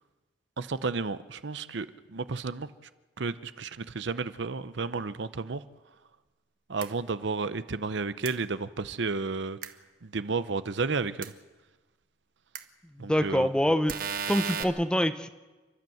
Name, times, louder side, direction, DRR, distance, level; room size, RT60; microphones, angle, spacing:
voice 1, 0.6-1.9 2.1-2.7 3.2-5.6 6.7-9.6 10.0-11.3 13.0-13.5, right 4 dB, 65° right, 13 dB, 0.7 m, -32 dB
sound 1, 6.8-6.9 8.3-8.4 9.6-9.7 11.2-11.3 12.5-12.6 13.9-14.6, right 7 dB, 50° right, 1.2 m, -33 dB
voice 2, 13.0-13.9 14.3-15.3, equal, 5° left, 10 dB, 0.7 m, -25 dB
29.5 x 12.0 x 7.8 m, 1.2 s
head